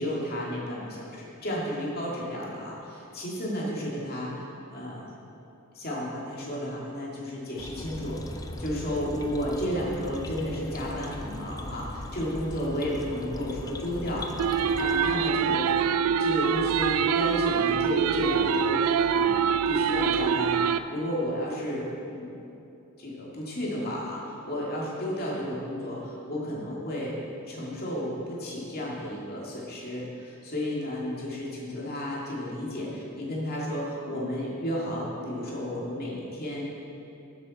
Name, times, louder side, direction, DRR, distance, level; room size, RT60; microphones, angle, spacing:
voice 1, 0.0-4.4 4.7-5.1 5.7-8.3 8.6-14.3 14.5-15.6 16.2-22.4 23.0-27.2 27.5-36.7, equal, 45° left, -4 dB, 2.3 m, -32 dB
sound 1, 7.6-15.2, left 1 dB, 15° left, 0.5 m, -39 dB
sound 2, 14.4-20.8, right 7 dB, 90° right, 0.4 m, -24 dB
13.0 x 7.5 x 4.2 m, 2.8 s
head